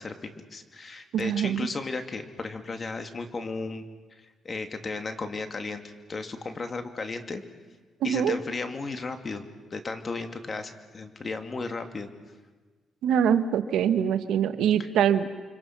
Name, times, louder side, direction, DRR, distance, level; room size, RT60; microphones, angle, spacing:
voice 1, 0.0-3.9 4.4-5.8 6.1-7.4 8.0-9.4 9.7-12.1, left 3 dB, 35° left, 7 dB, 2.5 m, -34 dB
voice 2, 1.1-1.7 8.0-8.4 13.0-15.3, right 8 dB, 85° right, 10 dB, 1.2 m, -24 dB
30.0 x 25.0 x 6.0 m, 1.4 s
cardioid pair, 85°, 0 cm